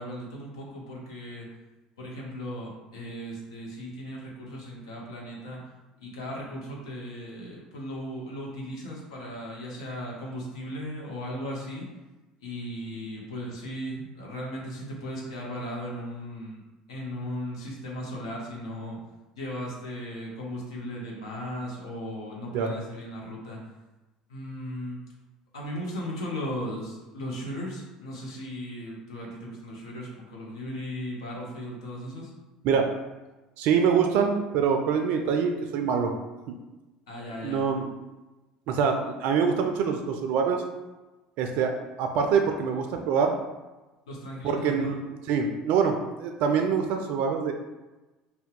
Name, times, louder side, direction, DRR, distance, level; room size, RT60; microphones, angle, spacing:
voice 1, 0.0-1.5 2.0-5.6 6.0-11.9 12.4-16.6 16.9-19.0 19.4-23.6 24.3-25.0 25.5-32.3 37.1-37.6 44.1-45.0, equal, 80° left, -3 dB, 0.8 m, -37 dB
voice 2, 33.6-36.1 36.5-36.6 37.4-37.9 38.7-40.6 41.4-41.7 42.0-43.3 44.4-47.5, right 6 dB, 65° right, 4 dB, 0.3 m, -25 dB
2.7 x 2.2 x 3.6 m, 1.1 s
hypercardioid pair, 70°, 3 cm